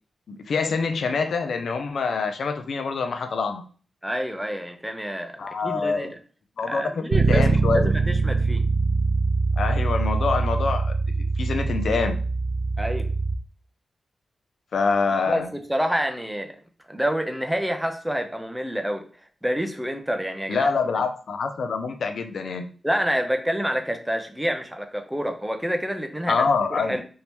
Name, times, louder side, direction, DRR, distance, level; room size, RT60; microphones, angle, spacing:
voice 1, 0.3-3.6 5.4-6.1 6.6-7.9 9.6-10.9 11.4-12.2 14.7-15.5 20.5-22.7 26.3-27.0, left 4 dB, 65° left, 6 dB, 0.3 m, -25 dB
voice 2, 4.0-6.2 6.6-8.6 12.8-13.1 15.2-16.5 16.9-19.0 19.4-20.7 22.8-26.4 26.7-27.0, equal, 5° right, 5 dB, 0.4 m, -28 dB
Bass guitar, 7.1-13.4, right 3 dB, 70° right, 0.4 m, -23 dB
3.4 x 2.7 x 2.9 m, 0.40 s
wide cardioid pair, 180°, 0 cm